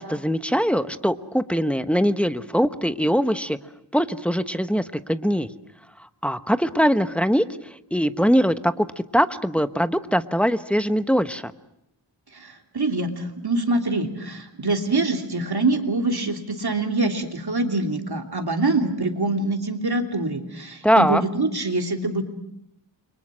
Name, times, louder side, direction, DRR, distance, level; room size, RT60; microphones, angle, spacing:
voice 1, 0.0-3.6 3.9-5.5 6.2-7.4 7.9-11.5 20.8-21.2, equal, 5° left, 10 dB, 1.1 m, -22 dB
voice 2, 12.4-22.2, right 2 dB, 55° right, 3 dB, 3.1 m, -24 dB
29.5 x 24.5 x 6.3 m, 0.80 s
wide cardioid pair, 70°, 45 cm